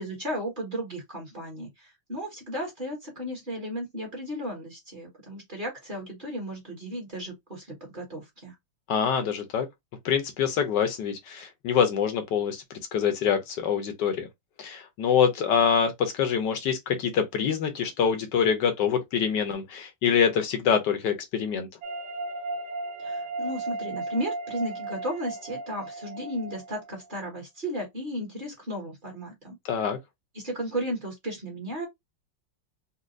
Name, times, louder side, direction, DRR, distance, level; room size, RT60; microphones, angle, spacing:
voice 1, 0.0-8.5 23.0-29.6 30.3-31.9, equal, 30° right, 1.2 m, -34 dB
voice 2, 8.9-9.7 10.0-12.6 12.9-14.3 14.6-21.7 29.6-30.0, left 7 dB, 70° left, 1.2 m, -25 dB
sound 1, 21.8-27.0, right 3 dB, 65° right, 1.1 m, -35 dB
4.1 x 2.2 x 2.5 m
omnidirectional pair, 2.1 m